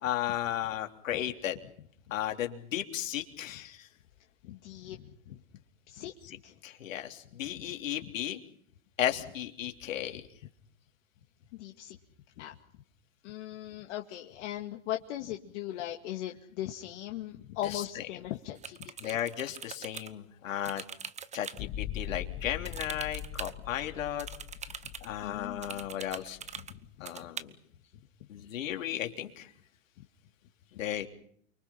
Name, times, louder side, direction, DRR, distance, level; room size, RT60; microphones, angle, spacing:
voice 1, 0.0-1.6 2.1-3.8 6.6-8.4 9.0-10.2 17.6-18.3 19.0-20.8 21.3-24.3 25.0-26.4 27.0-27.5 28.3-29.5 30.7-31.1, left 11 dB, 80° left, 4 dB, 3.5 m, -35 dB
voice 2, 4.4-5.4 5.9-6.1 6.4-6.5 10.1-10.2 11.5-12.0 12.4-12.5 13.2-19.1 25.2-25.6 26.7-26.8 27.2-27.3, left 13 dB, 60° left, 2 dB, 2.3 m, -39 dB
sound 1, 18.6-20.1 20.6-21.6 22.6-23.5 24.2-25.1 25.6-26.7 27.1-27.4, right 7 dB, 15° right, 1.1 m, -42 dB
sound 2, 21.6-26.8, left 11 dB, 40° left, 1.9 m, -41 dB
29.5 x 24.0 x 5.8 m, 0.64 s
hypercardioid pair, 120°, 39 cm